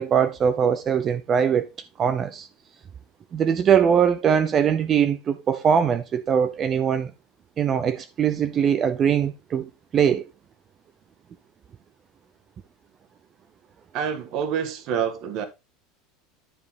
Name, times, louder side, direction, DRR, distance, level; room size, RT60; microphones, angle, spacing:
voice 1, 0.0-1.7 2.0-2.5 3.3-7.1 7.6-10.2, right 8 dB, 25° right, 0.6 m, -21 dB
voice 2, 13.9-15.4, right 7 dB, 45° right, 1.5 m, -27 dB
9.7 x 5.4 x 3.7 m
supercardioid pair, 160°, 0 cm